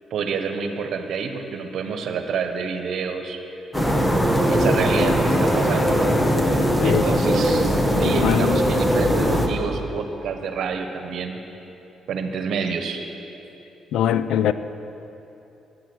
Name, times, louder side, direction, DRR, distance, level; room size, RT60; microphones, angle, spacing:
voice 1, 0.1-3.4 4.5-6.1 6.5-11.4 12.1-13.0, right 5 dB, 70° right, 1.2 m, -28 dB
sound 1, 3.7-9.5, equal, 10° left, 1.4 m, -20 dB
voice 2, 8.2-8.5 13.9-14.5, left 10 dB, 80° left, 0.4 m, -21 dB
13.5 x 9.4 x 6.3 m
cardioid pair, 90°, 0 cm